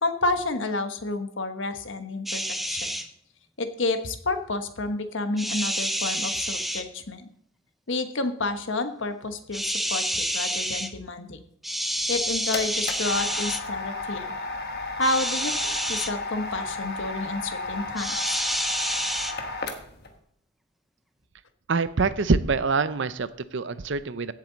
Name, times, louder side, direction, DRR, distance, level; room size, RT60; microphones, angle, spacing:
voice 1, 0.0-2.9 3.6-7.3 7.9-11.4 12.1-14.4 14.9-18.4, left 2 dB, 65° left, 8 dB, 1.2 m, -30 dB
sound 1, 2.3-3.1 5.4-6.8 9.5-10.9 11.6-13.6 15.0-16.1 18.0-19.3, equal, ahead, 0.6 m, -28 dB
sound 2, 12.0-20.1, left 3 dB, 50° left, 1.5 m, -34 dB
voice 2, 21.7-24.3, right 4 dB, 60° right, 14 dB, 0.6 m, -25 dB
16.5 x 7.6 x 4.0 m, 0.69 s
head